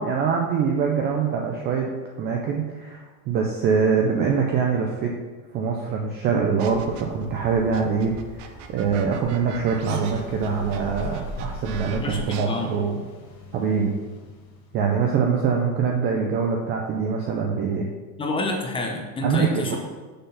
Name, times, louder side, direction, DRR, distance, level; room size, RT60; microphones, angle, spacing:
voice 1, 0.0-1.9 2.2-5.1 5.5-13.0 13.5-13.9 14.7-17.9 19.2-19.8, right 6 dB, 25° right, 1 dB, 0.4 m, -24 dB
sound 1, 6.6-7.2 7.7-12.4, right 8 dB, 55° right, 0.8 m, -41 dB
sound 2, 6.6-12.2, right 1 dB, 70° right, 1.4 m, -39 dB
sound 3, 10.0-15.1, left 2 dB, 65° left, 1.5 m, -45 dB
voice 2, 11.9-12.8 18.2-19.8, left 2 dB, 10° left, 2 dB, 0.6 m, -28 dB
6.7 x 3.8 x 5.5 m, 1.3 s
supercardioid pair, 145°, 44 cm